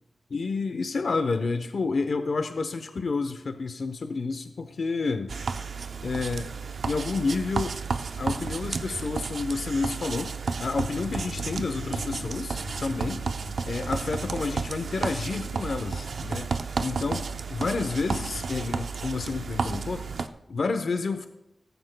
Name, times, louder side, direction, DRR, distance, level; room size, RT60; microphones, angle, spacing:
voice 1, 0.3-5.3 6.0-6.5 6.8-7.8 8.2-10.3 10.6-13.2 13.7-16.5 16.8-20.0 20.5-21.3, left 4 dB, 65° left, 8 dB, 0.8 m, -29 dB
sound 1, 5.3-20.3, right 5 dB, 75° right, 0.6 m, -32 dB
sound 2, 10.4-20.2, left 3 dB, 85° left, 1.4 m, -45 dB
17.0 x 15.0 x 2.2 m, 0.92 s
wide cardioid pair, 110°, 0 cm